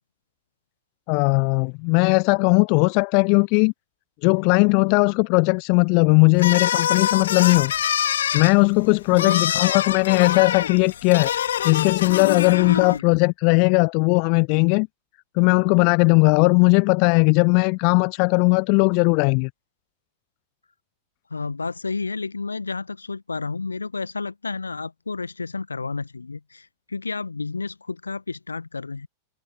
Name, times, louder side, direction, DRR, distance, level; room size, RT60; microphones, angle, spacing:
voice 1, 1.1-3.7 4.2-7.7 8.3-11.3 11.6-14.9 15.4-19.5, left 40 dB or more, 45° left, 0.5 m, -18 dB
sound 1, 6.4-13.0, left 10 dB, 65° left, 2.6 m, -25 dB
voice 2, 9.1-9.4 12.7-13.0 21.3-29.1, left 4 dB, 80° left, 1.1 m, -31 dB
figure-of-eight pair, 90°, 0 cm